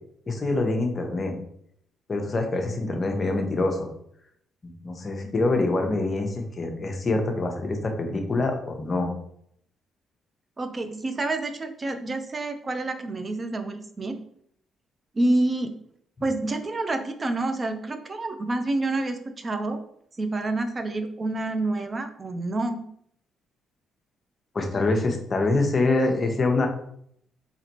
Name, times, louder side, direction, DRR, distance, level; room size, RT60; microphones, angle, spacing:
voice 1, 0.3-1.4 2.1-3.9 4.8-9.1 24.5-26.7, left 2 dB, 35° left, 3 dB, 0.8 m, -25 dB
voice 2, 10.6-14.2 15.1-15.7 16.2-19.8 20.2-22.8, right 2 dB, 30° right, 7 dB, 0.5 m, -28 dB
4.1 x 3.0 x 2.9 m, 0.68 s
cardioid pair, 90°, 0 cm